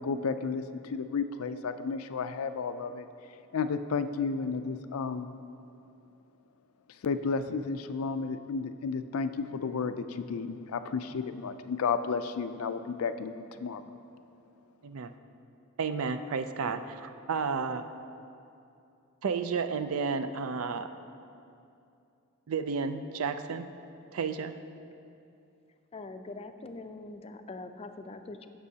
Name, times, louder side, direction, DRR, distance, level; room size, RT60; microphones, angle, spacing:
voice 1, 0.0-3.1 3.5-5.3 7.0-13.8, left 5 dB, 90° left, 10 dB, 0.4 m, -32 dB
voice 2, 15.8-17.8 19.2-20.9 22.5-23.7 24.1-24.5, right 5 dB, 80° right, 9 dB, 0.4 m, -32 dB
voice 3, 25.9-28.5, left 3 dB, 30° left, 8 dB, 0.4 m, -43 dB
16.0 x 6.2 x 2.8 m, 2.6 s
head